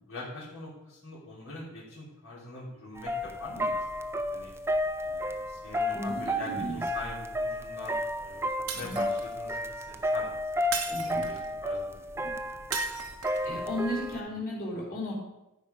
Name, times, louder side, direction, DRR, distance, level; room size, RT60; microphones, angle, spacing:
voice 1, 0.1-4.0 4.3-4.5 5.0-8.4 8.7-10.4 10.8-11.4 11.6-12.9, left 2 dB, 65° left, -8 dB, 3.4 m, -43 dB
sound 1, 3.0-14.2, left 1 dB, 10° right, 0.5 m, -32 dB
voice 2, 5.9-6.8 8.7-9.0 10.9-11.3 13.4-15.2, equal, 40° left, -5 dB, 4.0 m, -35 dB
Shatter, 8.7-9.4 10.7-11.5 12.7-13.5, right 7 dB, 80° right, 1.1 m, -36 dB
13.0 x 5.1 x 5.2 m, 0.94 s
head